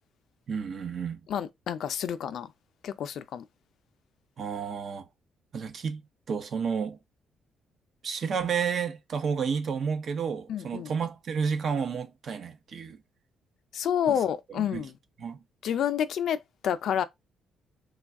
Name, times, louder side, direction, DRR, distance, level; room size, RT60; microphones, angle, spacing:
voice 1, 0.5-1.2 4.4-5.1 5.5-6.0 6.3-7.0 8.0-13.0 14.1-14.2 14.5-14.9 15.2-15.4, right 6 dB, 55° right, 0.8 m, -31 dB
voice 2, 1.3-2.5 2.8-3.4 10.5-10.9 13.7-14.9 15.6-16.4 16.6-17.0, left 9 dB, 70° left, 0.4 m, -29 dB
3.3 x 2.3 x 3.5 m
cardioid pair, 90°, 0 cm